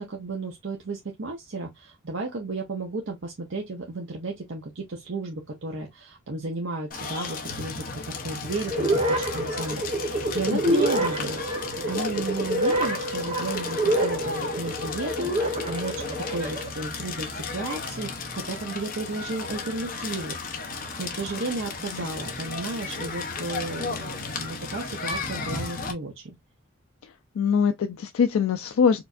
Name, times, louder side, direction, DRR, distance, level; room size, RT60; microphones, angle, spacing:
voice 1, 0.0-11.5 11.9-20.4 21.0-24.1 24.3-26.3, right 3 dB, 65° right, 0.7 m, -33 dB
Crackle, 6.9-25.9, left 4 dB, 45° left, 0.8 m, -34 dB
sound 1, 8.7-16.7, right 1 dB, 30° right, 0.8 m, -27 dB
voice 2, 27.4-29.0, left 6 dB, 85° left, 0.3 m, -23 dB
4.5 x 2.5 x 2.4 m
head